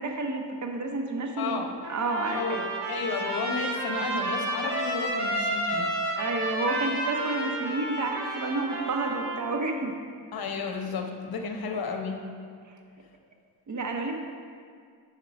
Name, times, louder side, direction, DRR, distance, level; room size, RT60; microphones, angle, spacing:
voice 1, 0.0-2.7 6.2-10.0 13.7-14.2, right 3 dB, 45° right, 3 dB, 0.7 m, -30 dB
voice 2, 1.4-1.7 2.3-2.6 2.9-5.9 10.3-12.2, left 4 dB, 60° left, 3 dB, 0.7 m, -32 dB
Trumpet, 1.8-9.4, right 1 dB, 85° right, 1.1 m, -31 dB
5.8 x 4.3 x 5.1 m, 2.1 s
wide cardioid pair, 155°, 40 cm